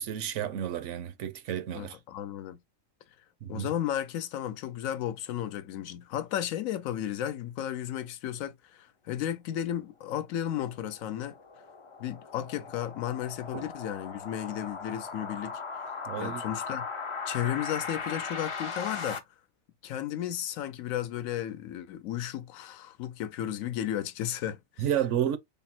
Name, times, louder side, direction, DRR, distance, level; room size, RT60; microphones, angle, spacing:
voice 1, 0.0-2.0 3.4-3.7 13.5-13.6 16.1-16.4 24.8-25.4, right 10 dB, 70° right, 0.9 m, -31 dB
voice 2, 1.7-2.6 3.5-11.3 12.0-15.6 16.2-16.8 17.3-19.2 19.8-24.9, left 11 dB, 85° left, 1.0 m, -34 dB
sound 1, 10.7-19.2, left 5 dB, 50° left, 0.3 m, -38 dB
3.6 x 2.0 x 4.1 m
omnidirectional pair, 1.4 m